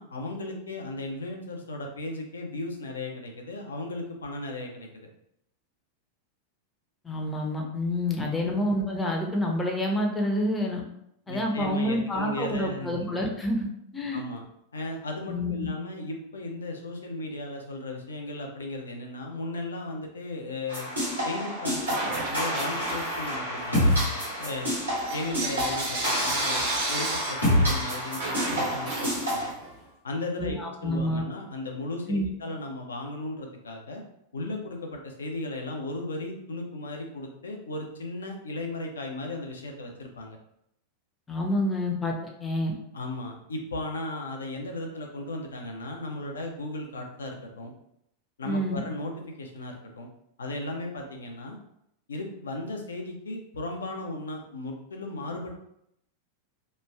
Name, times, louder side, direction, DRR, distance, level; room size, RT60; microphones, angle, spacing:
voice 1, 0.0-5.1 8.4-8.6 11.3-13.3 14.1-14.4 14.7-20.9 21.2-23.9 24.4-24.7 25.1-29.5 30.0-34.0 34.3-40.4 42.9-47.7 48.4-50.1 50.4-51.6 52.1-55.6, left 2 dB, 70° left, 2 dB, 0.5 m, -36 dB
voice 2, 7.0-10.8 11.3-14.2 15.3-15.7 30.4-31.2 32.1-32.3 41.3-42.1 42.4-42.7 48.4-48.8, left 1 dB, 15° left, 1 dB, 0.5 m, -28 dB
sound 1, 20.7-29.5, equal, 85° right, 1.2 m, -28 dB
Bell / Coin (dropping), 21.8-23.4 23.8-29.7, right 2 dB, 55° right, 1.0 m, -33 dB
3.0 x 2.2 x 2.3 m, 0.76 s
figure-of-eight pair, 90°, 0 cm